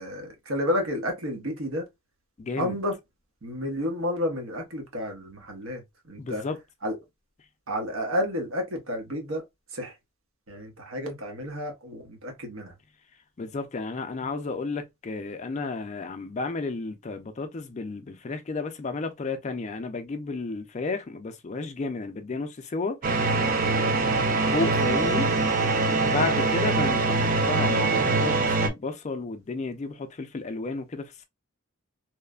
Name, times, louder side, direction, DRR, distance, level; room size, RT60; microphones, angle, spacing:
voice 1, 0.0-1.9 2.6-3.0 3.4-6.4 6.8-7.0 7.7-9.4 9.7-9.9 10.5-12.7 24.4-24.7, left 1 dB, 85° right, 0.9 m, -31 dB
voice 2, 2.4-2.8 6.2-6.6 13.4-23.0 24.5-25.3 26.0-31.2, left 3 dB, 35° left, 0.4 m, -32 dB
sound 1, 23.0-28.7, right 3 dB, 40° right, 0.4 m, -23 dB
3.1 x 2.1 x 2.3 m
head